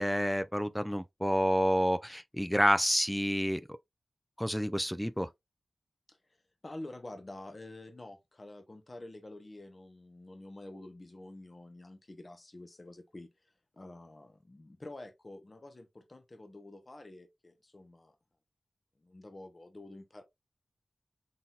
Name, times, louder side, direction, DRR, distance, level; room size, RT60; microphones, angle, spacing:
voice 1, 0.0-3.6 4.4-5.3, equal, 5° left, 0.3 m, -29 dB
voice 2, 6.6-18.1 19.0-20.2, left 2 dB, 35° left, 1.0 m, -48 dB
4.2 x 4.0 x 2.4 m
wide cardioid pair, 70°, 0 cm